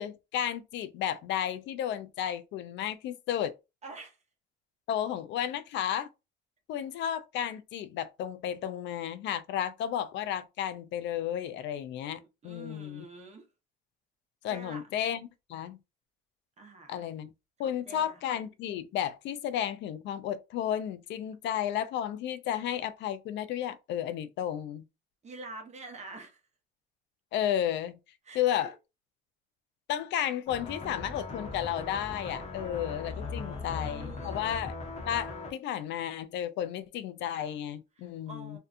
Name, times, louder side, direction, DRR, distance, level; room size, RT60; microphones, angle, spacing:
voice 1, 0.0-3.5 4.9-6.1 6.7-13.1 14.4-15.2 15.5-15.8 16.9-17.3 17.6-24.9 27.3-28.0 28.3-28.7 29.9-34.7 35.0-38.6, left 10 dB, 70° left, 0.4 m, -33 dB
voice 2, 3.8-4.2 12.2-13.5 14.5-14.8 16.6-17.1 17.6-18.2 25.2-26.4 28.2-28.7 33.1-34.5 38.0-38.6, right 2 dB, 35° right, 0.9 m, -47 dB
sound 1, 30.5-35.5, left 3 dB, 35° left, 0.9 m, -39 dB
2.6 x 2.2 x 2.4 m
cardioid pair, 95°, 20 cm